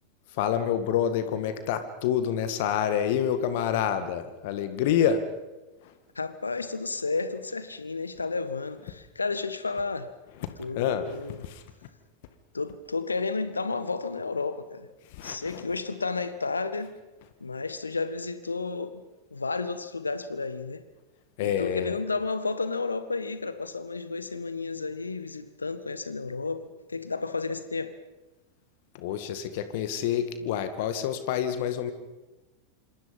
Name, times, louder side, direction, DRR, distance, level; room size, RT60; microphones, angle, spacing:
voice 1, 0.3-5.3 5.8-5.9 10.4-11.6 15.1-15.7 21.4-22.0 28.9-31.9, left 9 dB, 50° left, 10 dB, 2.1 m, -28 dB
voice 2, 6.1-10.1 10.6-11.4 12.5-14.9 15.2-16.9 17.4-19.0 19.3-20.8 21.4-27.9, left 4 dB, 80° left, 12 dB, 1.7 m, -32 dB
27.0 x 26.0 x 5.5 m, 1.1 s
figure-of-eight pair, 90°, 0 cm